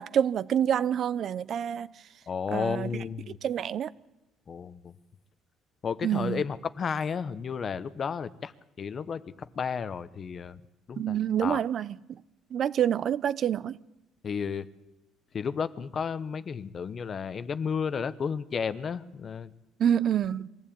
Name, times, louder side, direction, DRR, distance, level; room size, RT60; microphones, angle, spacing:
voice 1, 0.0-1.9 2.5-2.9 3.4-3.9 6.0-6.4 11.0-12.0 12.5-13.8 19.8-20.5, right 9 dB, 50° right, 0.7 m, -27 dB
voice 2, 2.3-3.4 4.5-4.9 5.8-8.5 8.8-10.6 10.9-11.1 11.4-11.6 14.2-14.7 15.3-19.5, left 6 dB, 35° left, 0.9 m, -32 dB
23.0 x 15.5 x 8.7 m
cardioid pair, 125°, 0 cm